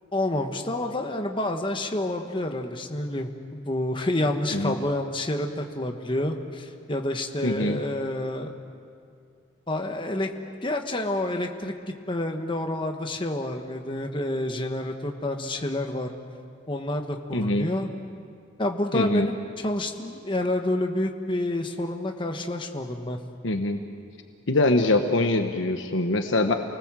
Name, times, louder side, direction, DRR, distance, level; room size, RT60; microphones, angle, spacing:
voice 1, 0.1-8.5 9.7-10.3 10.6-11.7 12.1-16.1 16.7-17.9 18.6-23.2, left 1 dB, 25° left, 4 dB, 1.3 m, -28 dB
voice 2, 7.4-7.8 17.3-17.7 18.9-19.3 23.4-23.8 24.5-26.5, left 2 dB, 70° left, 5 dB, 1.2 m, -23 dB
29.0 x 19.5 x 7.5 m, 2.3 s
head